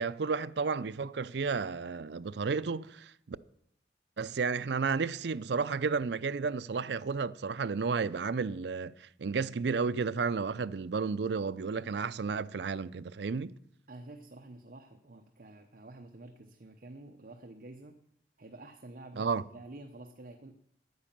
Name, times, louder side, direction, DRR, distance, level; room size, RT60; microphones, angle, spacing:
voice 1, 0.0-3.4 4.2-8.9 9.2-13.5 19.2-19.4, right 5 dB, 75° right, 0.5 m, -32 dB
voice 2, 13.9-18.0 18.4-20.5, right 2 dB, 50° right, 0.8 m, -49 dB
11.0 x 9.5 x 7.3 m
head